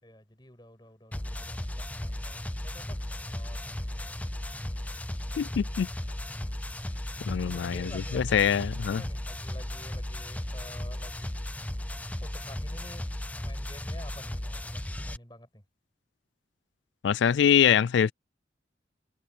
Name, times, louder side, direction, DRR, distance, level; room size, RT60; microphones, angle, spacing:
voice 1, 0.0-4.4 5.0-5.6 7.4-11.4 12.2-13.1 13.4-15.6, left 1 dB, 25° left, 6.7 m, -50 dB
sound 1, 1.1-15.2, left 1 dB, 10° left, 0.5 m, -36 dB
voice 2, 5.4-5.9 7.3-9.0 17.0-18.1, left 8 dB, 85° left, 0.3 m, -24 dB
head